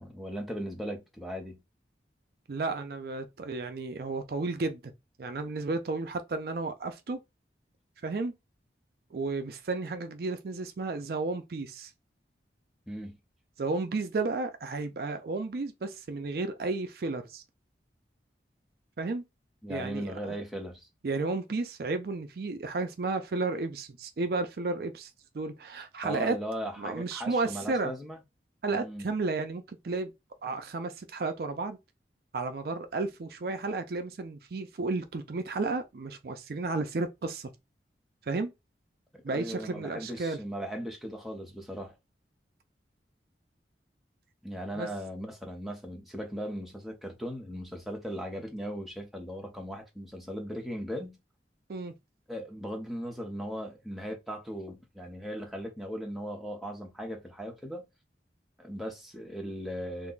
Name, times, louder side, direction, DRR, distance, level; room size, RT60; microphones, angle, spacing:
voice 1, 0.0-1.6 12.9-13.2 19.6-20.9 26.0-28.2 28.7-29.1 39.1-42.0 44.4-51.2 52.3-57.8 58.6-60.1, equal, ahead, 0.7 m, -38 dB
voice 2, 2.5-4.8 5.2-7.2 8.0-8.3 9.1-11.9 13.6-17.4 19.0-19.2 19.7-20.4 21.0-26.4 26.8-27.9 28.6-30.1 30.4-31.8 32.3-37.5 38.3-38.5 39.2-40.4 44.7-44.9 51.7-51.9, right 3 dB, 55° right, 0.4 m, -33 dB
2.5 x 2.2 x 3.8 m
head